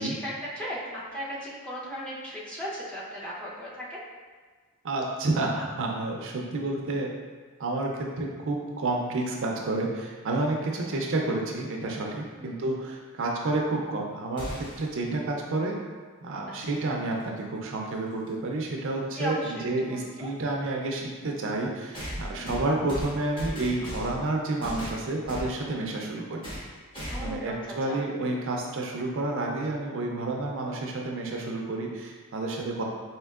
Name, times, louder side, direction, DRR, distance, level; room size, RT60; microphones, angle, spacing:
voice 1, 0.0-4.0 10.8-10.9 12.3-12.6 16.5-16.8 19.1-20.3 22.3-22.6 27.1-28.0, equal, 5° left, -7 dB, 0.7 m, -37 dB
voice 2, 4.8-7.1 7.6-15.8 16.2-26.5 27.2-32.8, right 2 dB, 65° right, 0 dB, 0.5 m, -30 dB
sound 1, 14.4-14.9 17.1-17.2 18.3-18.4 21.9-24.3 24.6-25.5 26.4-26.7 26.9-27.4, equal, 25° left, 1.1 m, -36 dB
4.4 x 2.8 x 2.3 m, 1.4 s
head